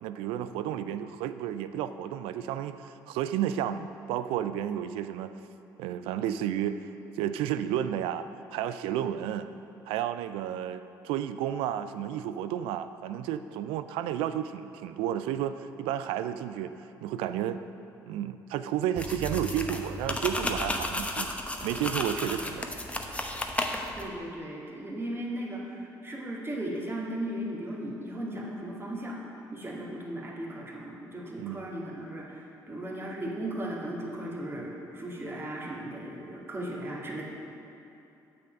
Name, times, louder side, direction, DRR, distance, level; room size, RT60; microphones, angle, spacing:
voice 1, 0.0-5.3 5.8-6.8 7.2-9.5 9.9-16.7 17.0-17.6 18.1-22.7 31.4-31.7, right 10 dB, 75° right, 11 dB, 0.4 m, -32 dB
sound 1, 19.0-24.1, left 1 dB, 15° left, 0.9 m, -33 dB
voice 2, 24.0-29.2 29.5-37.2, right 1 dB, 25° right, -3 dB, 2.2 m, -36 dB
8.2 x 6.9 x 5.3 m, 2.8 s
hypercardioid pair, 55°, 9 cm